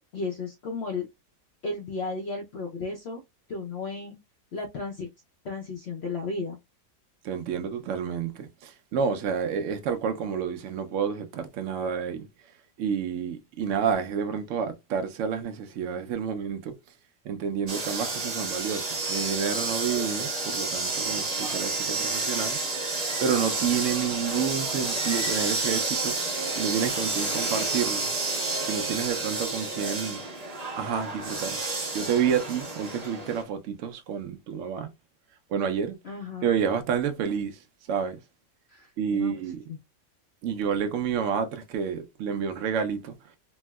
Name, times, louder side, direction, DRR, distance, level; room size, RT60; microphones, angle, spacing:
voice 1, 0.1-1.1 1.6-3.2 3.5-4.2 4.5-5.1 5.4-6.6 36.0-36.5 38.7-39.4 39.7-39.8, left 3 dB, 70° left, 0.6 m, -34 dB
voice 2, 7.2-12.3 12.8-16.7 17.2-22.6 23.2-28.1 28.7-30.2 30.8-31.6 31.9-34.9 35.5-36.0 36.4-37.6 37.9-38.2 39.0-39.6 40.4-43.1, right 7 dB, 75° right, 0.7 m, -29 dB
sound 1, 17.7-33.4, right 3 dB, 35° right, 0.7 m, -30 dB
4.3 x 2.0 x 2.2 m
omnidirectional pair, 1.8 m